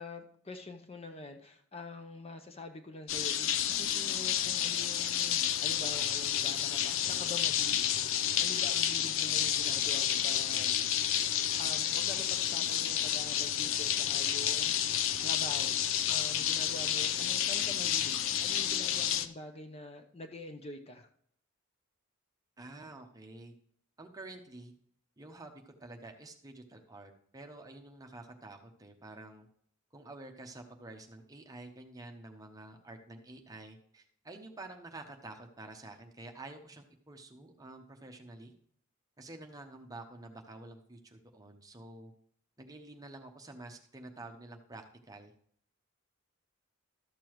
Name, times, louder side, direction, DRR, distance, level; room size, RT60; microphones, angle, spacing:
voice 1, 0.0-10.8 11.6-15.8 16.1-21.1, left 2 dB, 30° left, 5 dB, 0.7 m, -46 dB
sound 1, 3.1-19.3, left 10 dB, 65° left, 0.5 m, -30 dB
voice 2, 22.6-23.5 24.0-24.7 25.2-29.5 29.9-38.5 39.2-42.1 42.6-45.3, right 2 dB, 15° right, 4 dB, 0.9 m, -49 dB
12.5 x 6.8 x 3.0 m, 0.63 s
head